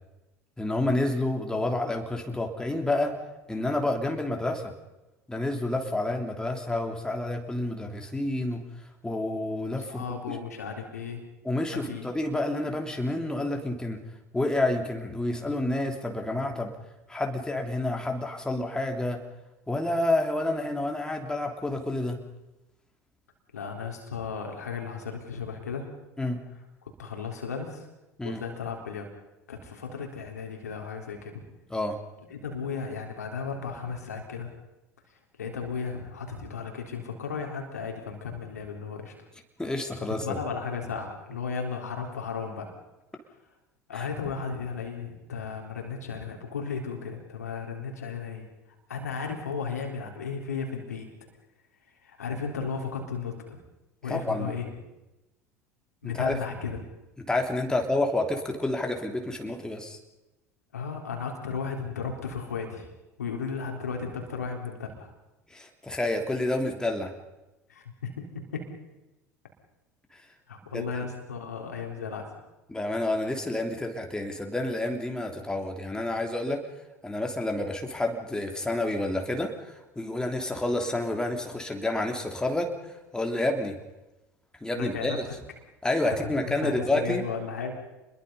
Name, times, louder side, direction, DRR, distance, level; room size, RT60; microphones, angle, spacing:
voice 1, 0.6-3.1 3.5-4.7 5.3-8.6 9.0-10.4 11.4-14.0 14.3-16.7 17.1-19.2 19.7-22.2 26.2-26.4 28.2-28.4 31.7-32.0 39.6-40.4 43.9-44.1 54.1-54.5 56.0-56.4 57.3-60.0 65.5-67.1 70.1-70.2 70.7-70.8 72.7-76.6 77.0-82.7 83.1-83.7 84.6-85.2 85.8-87.2, left 2 dB, 10° left, 3 dB, 3.2 m, -29 dB
voice 2, 9.9-11.2 11.7-12.1 23.5-25.9 26.8-27.9 28.2-29.0 29.5-31.4 32.3-34.5 35.4-39.1 40.1-42.7 43.9-48.5 48.9-51.1 52.0-53.6 54.0-54.7 56.0-56.8 57.7-57.8 60.7-62.9 63.2-65.1 67.7-68.7 70.5-72.2 84.8-85.2 86.0-87.8, left 5 dB, 80° left, 2 dB, 3.7 m, -35 dB
28.5 x 21.5 x 5.5 m, 1.0 s
figure-of-eight pair, 70°, 9 cm